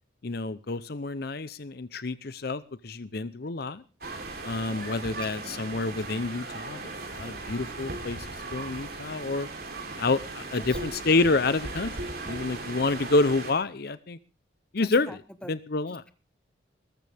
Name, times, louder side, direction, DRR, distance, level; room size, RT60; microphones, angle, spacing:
voice 1, 0.2-3.8 4.4-6.8 7.1-8.2 8.5-9.5 10.0-11.9 12.3-14.2 14.7-15.2 15.5-16.0, left 3 dB, 55° left, 15 dB, 0.7 m, -28 dB
sound 1, 4.0-13.5, right 2 dB, 55° right, 3.5 m, -37 dB
voice 2, 10.6-11.0 14.8-15.5 15.9-16.1, left 1 dB, 5° left, 10 dB, 1.2 m, -45 dB
20.5 x 13.5 x 3.5 m, 0.33 s
head